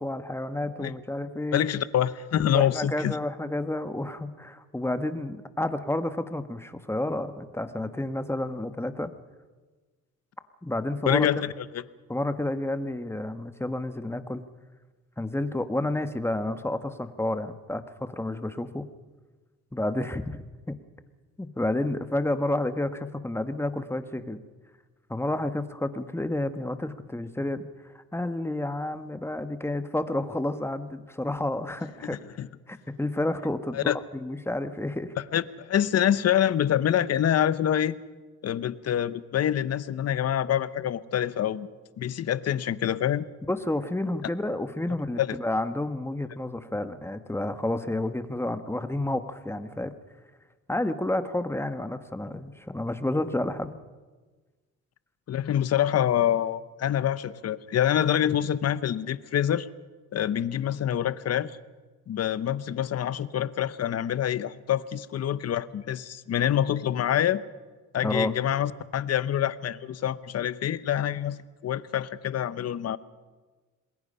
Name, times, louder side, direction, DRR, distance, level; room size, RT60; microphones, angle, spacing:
voice 1, 0.0-1.6 2.5-9.1 10.6-11.4 12.1-14.4 15.2-18.9 19.7-20.8 21.4-24.4 25.1-32.2 32.7-35.1 43.5-49.9 50.7-53.8 68.0-68.3, left 1 dB, 10° left, 9 dB, 1.4 m, -30 dB
voice 2, 1.5-3.2 11.1-11.8 32.4-32.5 33.7-34.0 35.3-37.9 38.4-41.7 42.0-43.2 45.2-45.3 55.3-59.7 60.1-61.6 62.1-67.4 67.9-73.0, left 10 dB, 55° left, 16 dB, 0.9 m, -26 dB
27.5 x 20.5 x 5.6 m, 1.3 s
cardioid pair, 90°, 30 cm